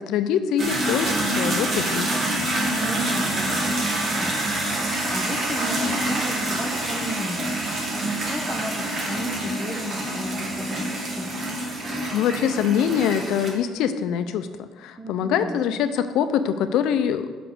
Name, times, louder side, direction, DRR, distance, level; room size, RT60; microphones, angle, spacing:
voice 1, 0.0-2.1 12.1-17.3, left 8 dB, 65° left, 10 dB, 0.5 m, -24 dB
sound 1, 0.6-13.5, right 1 dB, 30° right, 1.3 m, -26 dB
voice 2, 2.7-11.4 15.0-15.6, right 1 dB, 5° right, 1 dB, 0.6 m, -34 dB
6.0 x 5.0 x 6.2 m, 1.3 s
cardioid pair, 180°, 0 cm